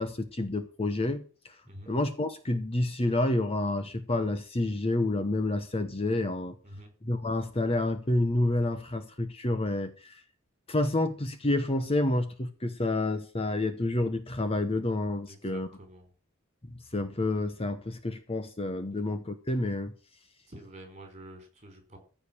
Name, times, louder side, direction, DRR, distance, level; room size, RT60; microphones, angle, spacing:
voice 1, 0.0-1.6 1.9-6.5 7.0-10.2 10.7-15.7 16.6-19.9, left 2 dB, 25° left, 1.0 m, -29 dB
voice 2, 15.3-16.1 18.9-19.1 20.5-22.0, right 1 dB, 30° right, 4.8 m, -48 dB
15.0 x 5.1 x 8.7 m
head